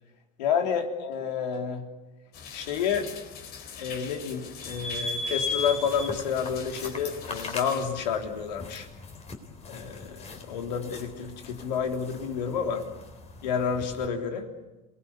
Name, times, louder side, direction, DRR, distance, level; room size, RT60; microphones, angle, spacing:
voice 1, 0.4-1.9 2.5-3.1 3.8-8.9 9.6-12.8 13.4-14.4, left 7 dB, 80° left, 4 dB, 3.4 m, -29 dB
sound 1, 2.3-7.9, left 7 dB, 50° left, 3.8 m, -43 dB
sound 2, 4.6-14.1, left 3 dB, 30° left, 3.8 m, -37 dB
28.0 x 19.0 x 8.5 m, 1.1 s
hypercardioid pair, 90°, 21 cm